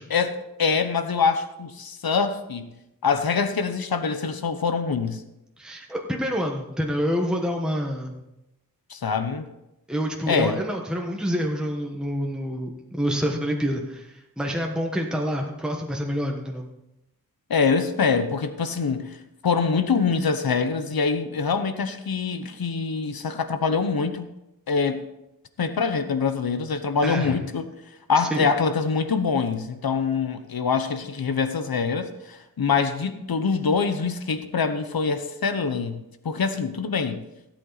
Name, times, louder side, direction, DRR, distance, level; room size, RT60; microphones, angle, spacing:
voice 1, 0.1-2.7 3.0-5.2 8.9-9.5 10.3-10.6 17.5-19.2 19.4-24.3 24.7-25.1 25.6-27.7 28.1-37.2, left 5 dB, 85° left, 9 dB, 1.0 m, -24 dB
voice 2, 5.6-8.2 9.9-16.7 27.0-27.4 28.2-28.5, equal, ahead, 0 dB, 1.3 m, -27 dB
16.0 x 8.4 x 4.1 m, 0.90 s
wide cardioid pair, 85°, 35 cm